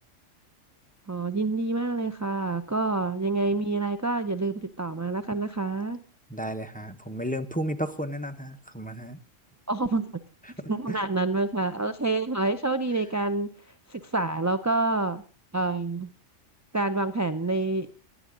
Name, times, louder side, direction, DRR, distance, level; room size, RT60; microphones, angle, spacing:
voice 1, 1.1-6.0 9.7-10.1 10.7-13.5 13.9-15.2 15.5-16.1 16.7-17.9, right 3 dB, 25° right, 10 dB, 0.4 m, -27 dB
voice 2, 6.3-9.2 10.9-11.0, equal, 10° left, 9 dB, 0.8 m, -33 dB
18.5 x 11.5 x 3.8 m, 0.40 s
omnidirectional pair, 1.3 m